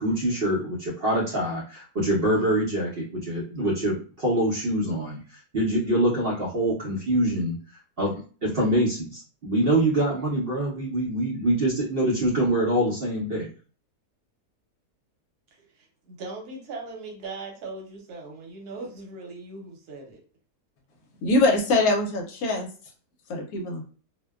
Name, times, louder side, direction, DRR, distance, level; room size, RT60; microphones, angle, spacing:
voice 1, 0.0-7.6 8.0-8.1 8.4-13.5, right 1 dB, 55° right, -5 dB, 0.7 m, -25 dB
voice 2, 15.5-20.2, right 3 dB, 80° right, 1 dB, 1.2 m, -39 dB
voice 3, 21.2-22.7 23.3-23.8, left 2 dB, 70° left, 2 dB, 1.0 m, -23 dB
2.6 x 2.1 x 2.2 m, 0.38 s
omnidirectional pair, 1.7 m